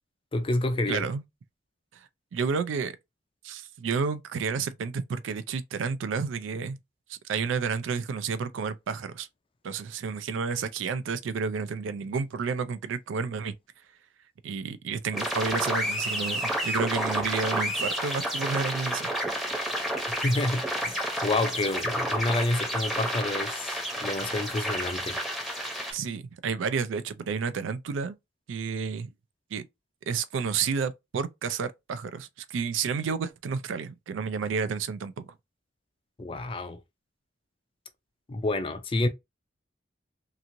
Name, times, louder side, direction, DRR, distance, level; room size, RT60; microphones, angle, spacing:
voice 1, 0.3-1.1 20.1-25.2 36.2-36.8 38.3-39.1, left 2 dB, 30° left, 0.4 m, -29 dB
voice 2, 0.9-1.2 1.9-3.0 3.4-6.8 7.1-9.3 9.6-13.5 14.4-19.1 25.9-28.2 28.5-29.1 29.5-29.7 30.1-35.3, right 5 dB, 85° right, 0.4 m, -31 dB
sound 1, 15.1-25.9, equal, ahead, 0.7 m, -30 dB
3.0 x 2.5 x 2.5 m
head